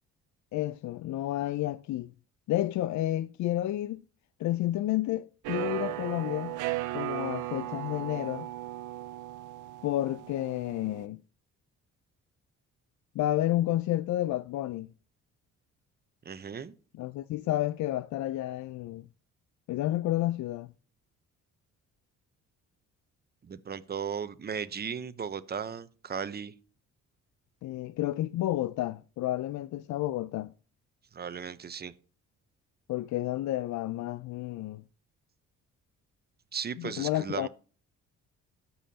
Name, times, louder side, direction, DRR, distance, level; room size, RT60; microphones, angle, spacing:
voice 1, 0.5-2.1 2.5-4.0 4.4-6.6 6.9-8.5 9.8-11.2 13.2-14.9 16.9-19.0 19.7-20.7 27.6-30.5 32.9-34.8 36.8-37.5, left 14 dB, 70° left, 0.4 m, -30 dB
sound 1, 5.4-11.1, right 16 dB, 85° right, 0.6 m, -36 dB
voice 2, 16.2-16.7 23.4-26.5 31.1-31.9 36.5-37.5, right 7 dB, 30° right, 0.8 m, -36 dB
13.5 x 5.6 x 2.8 m
cardioid pair, 90°, 30 cm